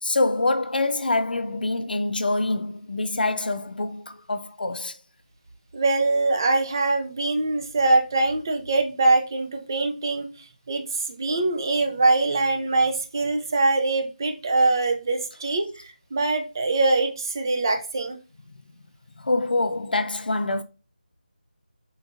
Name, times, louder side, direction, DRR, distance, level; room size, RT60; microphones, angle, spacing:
voice 1, 0.0-5.0 19.2-20.6, left 2 dB, 75° left, 0.4 m, -25 dB
voice 2, 5.7-18.2, right 2 dB, 25° right, 0.3 m, -23 dB
3.7 x 2.6 x 2.4 m
figure-of-eight pair, 165°, 5 cm